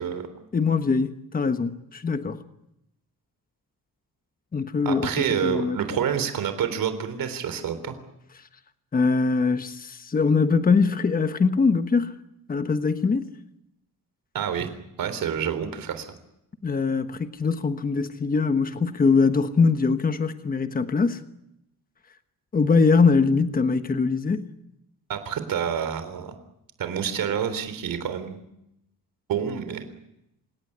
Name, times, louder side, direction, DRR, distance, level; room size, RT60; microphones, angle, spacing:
voice 1, 0.0-0.4 4.9-8.0 14.3-14.7 15.0-16.1 25.1-26.4 26.8-28.4 29.3-29.9, right 8 dB, 70° right, 3.7 m, -28 dB
voice 2, 0.5-2.4 4.5-5.1 5.4-5.8 8.9-12.1 12.5-13.3 16.6-21.2 22.5-24.5, left 4 dB, 25° left, 1.2 m, -22 dB
27.5 x 17.5 x 9.8 m
wide cardioid pair, 160°, 35 cm